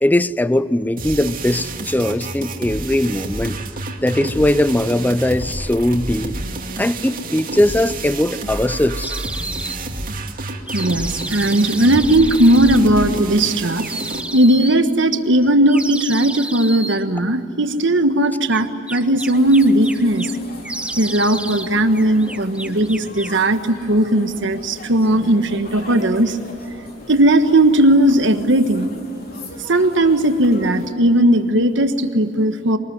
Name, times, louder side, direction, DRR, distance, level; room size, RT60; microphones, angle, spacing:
voice 1, 0.0-3.6 4.0-6.4 6.8-9.1, left 1 dB, 10° left, 0.5 m, -19 dB
sound 1, 1.0-14.2, right 2 dB, 45° right, 2.5 m, -29 dB
sound 2, 9.0-9.8 10.7-12.8 13.8-14.8 15.7-17.0 18.5-20.4 20.6-21.7 21.9-23.4, right 2 dB, 5° right, 0.9 m, -31 dB
voice 2, 10.7-13.9 14.3-20.3 21.0-26.4 27.1-28.9 29.7-32.8, right 1 dB, 65° right, 1.4 m, -16 dB
sound 3, 19.3-30.9, left 1 dB, 50° left, 3.7 m, -38 dB
23.5 x 19.5 x 9.5 m
head